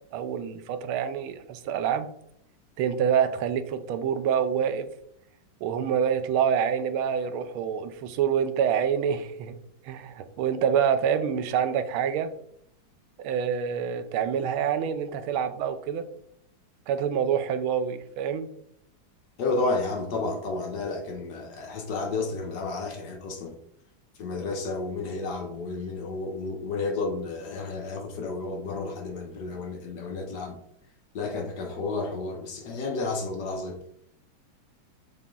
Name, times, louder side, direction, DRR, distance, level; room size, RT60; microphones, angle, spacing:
voice 1, 0.1-2.1 2.8-4.9 5.6-9.6 9.8-12.3 13.2-16.1 16.9-18.5, right 8 dB, 85° right, 10 dB, 1.5 m, -26 dB
voice 2, 19.4-23.5 24.2-30.6 31.1-33.8, left 3 dB, 60° left, 3 dB, 1.3 m, -31 dB
7.3 x 3.6 x 3.8 m, 0.71 s
omnidirectional pair, 2.3 m